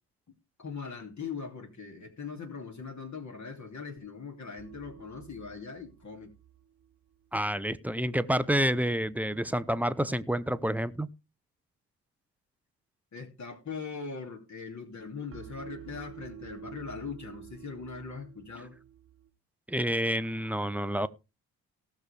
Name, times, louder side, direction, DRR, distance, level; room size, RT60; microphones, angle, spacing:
voice 1, 0.6-6.3 13.1-18.7, left 5 dB, 35° left, 2.8 m, -41 dB
sound 1, 4.6-7.7 15.3-19.3, right 10 dB, 30° right, 1.4 m, -50 dB
voice 2, 7.3-11.1 19.7-21.1, equal, 5° right, 0.7 m, -28 dB
18.5 x 6.9 x 3.4 m
hypercardioid pair, 45°, 47 cm